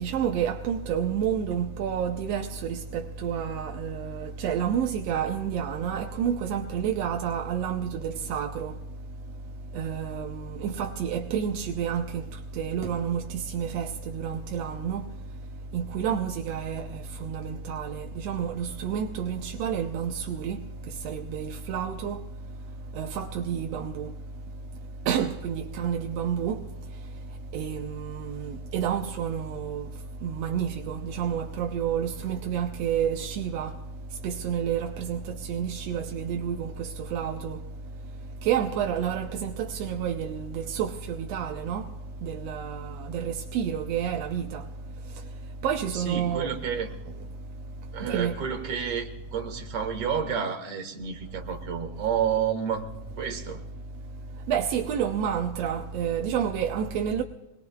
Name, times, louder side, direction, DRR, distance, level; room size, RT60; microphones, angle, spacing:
voice 1, 0.0-8.7 9.7-12.2 12.6-15.0 15.7-20.6 21.0-22.2 23.0-24.1 25.1-26.6 27.5-29.8 30.2-33.7 34.2-37.6 38.4-41.9 42.2-44.6 45.6-46.5 48.0-48.4 54.5-57.2, right 8 dB, 70° right, 1.7 m, -29 dB
voice 2, 45.9-46.9 47.9-52.9 53.2-53.6, right 7 dB, 55° right, 2.5 m, -30 dB
25.5 x 21.0 x 2.4 m
omnidirectional pair, 3.6 m